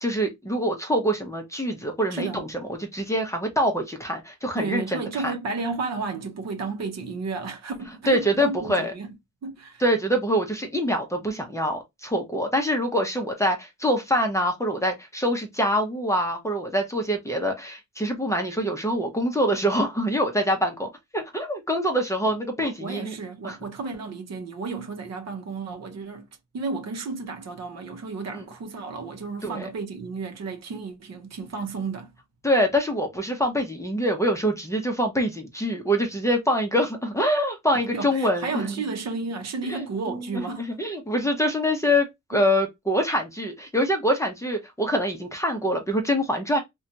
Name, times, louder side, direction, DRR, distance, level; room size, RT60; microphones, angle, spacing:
voice 1, 0.0-5.0 8.1-8.9 9.8-23.1 23.4-23.6 28.3-28.4 29.4-29.7 32.4-38.7 39.7-46.6, equal, 10° left, 0.6 m, -25 dB
voice 2, 2.1-2.4 4.6-9.1 9.4-9.8 22.2-26.3 26.5-32.1 37.7-40.7 42.3-42.4, right 4 dB, 60° right, 0.7 m, -33 dB
2.7 x 2.2 x 2.6 m
wide cardioid pair, 120°, 30 cm